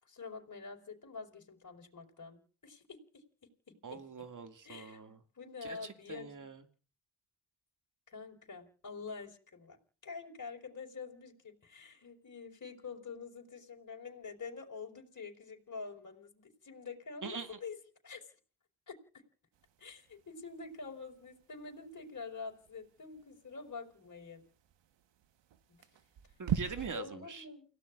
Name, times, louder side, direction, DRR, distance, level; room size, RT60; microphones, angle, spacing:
voice 1, 0.0-2.4 2.6-4.0 4.6-6.5 8.1-9.8 10.0-17.8 18.0-18.3 18.9-19.2 19.8-24.4 25.7-25.8 26.9-27.6, left 4 dB, 40° left, 5.3 m, -47 dB
voice 2, 3.8-5.2 5.6-6.6 17.2-17.6 26.4-27.4, right 5 dB, 40° right, 2.4 m, -43 dB
sound 1, 19.5-26.9, right 10 dB, 70° right, 1.5 m, -43 dB
29.5 x 17.0 x 2.6 m
supercardioid pair, 60°, 45 cm